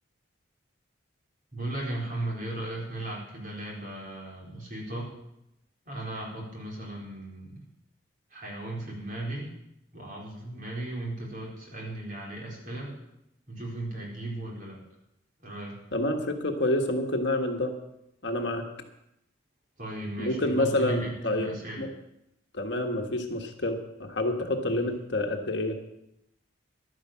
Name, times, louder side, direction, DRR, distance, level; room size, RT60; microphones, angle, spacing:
voice 1, 1.5-5.1 5.9-7.7 8.3-9.5 9.9-12.9 13.5-14.8 15.4-15.8 19.8-21.9 24.7-24.8, right 1 dB, 45° right, -3 dB, 4.3 m, -36 dB
voice 2, 15.9-17.7 18.2-18.7 20.2-21.5 21.8-21.9 22.5-25.8, left 1 dB, 60° left, 4 dB, 1.5 m, -28 dB
11.5 x 10.0 x 7.3 m, 0.84 s
head